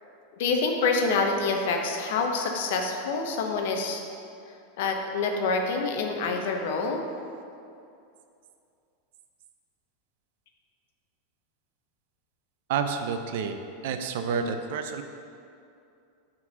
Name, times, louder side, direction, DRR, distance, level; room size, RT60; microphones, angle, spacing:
voice 1, 0.4-4.0 4.8-7.0, left 4 dB, 70° left, 3 dB, 0.8 m, -26 dB
voice 2, 12.7-13.6 13.8-15.0, right 6 dB, 70° right, 7 dB, 0.5 m, -29 dB
5.9 x 3.8 x 5.7 m, 2.5 s
hypercardioid pair, 105°, 0 cm